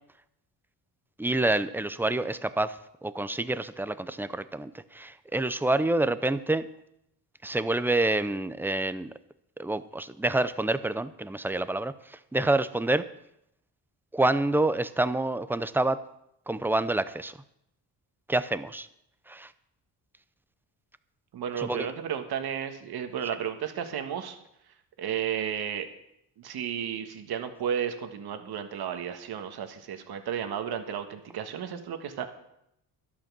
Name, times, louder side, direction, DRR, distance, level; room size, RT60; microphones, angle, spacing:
voice 1, 1.2-2.8 3.0-6.7 7.4-9.1 9.6-13.0 14.1-16.0 16.5-17.3 18.3-18.9 19.3-19.5 21.6-21.9, right 2 dB, 5° right, 13 dB, 0.6 m, -27 dB
voice 2, 21.3-24.4 25.0-25.9 26.4-32.3, right 8 dB, 70° right, 7 dB, 1.5 m, -33 dB
12.0 x 8.7 x 6.1 m, 0.80 s
cardioid pair, 90°, 39 cm